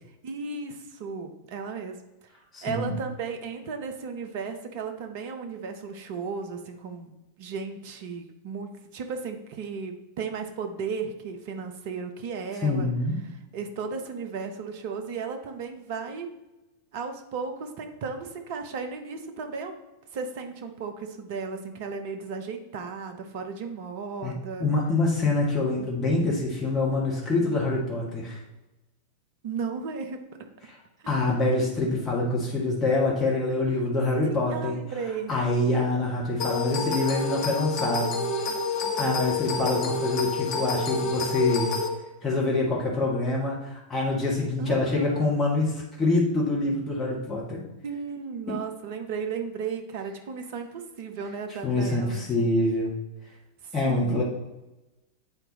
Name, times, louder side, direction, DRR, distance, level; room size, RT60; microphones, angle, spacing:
voice 1, 0.2-2.0 2.6-12.9 13.2-16.3 16.9-19.8 20.1-24.7 27.4-27.5 29.4-30.2 31.0-31.2 34.3-35.3 44.6-45.4 47.8-52.6 53.6-54.2, right 5 dB, 50° right, 6 dB, 0.9 m, -35 dB
voice 2, 2.5-2.9 12.6-13.2 24.2-24.3 24.6-28.4 30.6-30.8 31.1-34.8 35.3-38.3 39.0-41.7 42.2-47.6 51.6-52.9 53.7-54.2, left 2 dB, 15° left, -4 dB, 1.6 m, -25 dB
sound 1, 36.4-41.9, left 3 dB, 40° left, 1.5 m, -28 dB
8.4 x 4.5 x 4.0 m, 1.0 s
figure-of-eight pair, 90°, 0 cm